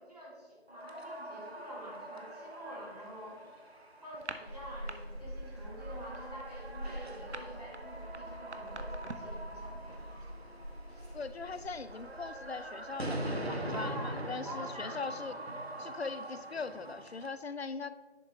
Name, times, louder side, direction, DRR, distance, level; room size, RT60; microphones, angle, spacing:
voice 1, 0.0-3.4 4.0-10.1 13.7-14.1 14.4-15.0 15.5-15.7, equal, 35° right, -6 dB, 2.2 m, -47 dB
sound 1, 0.7-17.3, right 1 dB, 70° right, 1.2 m, -43 dB
sound 2, 4.1-5.0 5.3-5.6 5.9-9.4, right 3 dB, 85° right, 0.8 m, -45 dB
sound 3, 4.5-13.7, equal, 40° left, 2.0 m, -46 dB
voice 2, 11.1-15.4 15.8-17.9, left 4 dB, 70° left, 13 dB, 0.5 m, -40 dB
10.5 x 4.6 x 3.7 m, 1.5 s
figure-of-eight pair, 180°, 33 cm